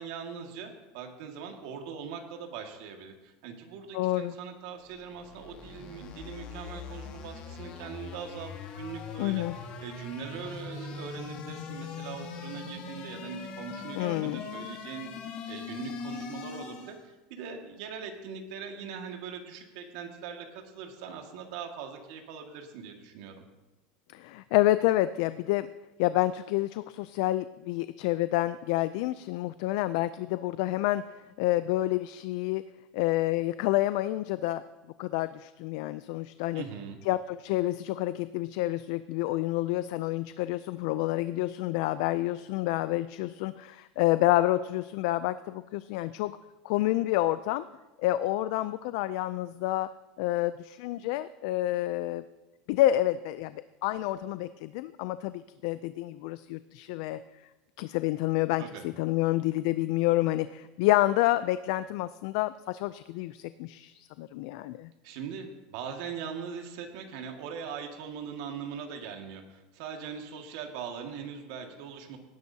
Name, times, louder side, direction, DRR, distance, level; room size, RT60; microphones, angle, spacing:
voice 1, 0.0-8.5 8.8-9.4 9.8-15.1 15.5-23.4 36.5-37.0 58.6-58.8 65.0-72.2, right 6 dB, 65° right, 3 dB, 1.9 m, -41 dB
voice 2, 3.9-4.3 9.2-9.6 14.0-14.4 24.1-25.7 26.0-31.0 31.4-32.6 32.9-34.6 35.0-36.6 37.1-46.4 46.6-47.6 48.0-49.9 50.2-52.2 52.7-57.2 57.8-64.9, left 16 dB, 60° left, 14 dB, 0.3 m, -28 dB
sound 1, 4.9-17.1, left 5 dB, 40° left, 1.4 m, -41 dB
18.0 x 11.0 x 2.8 m, 1.1 s
supercardioid pair, 155°, 3 cm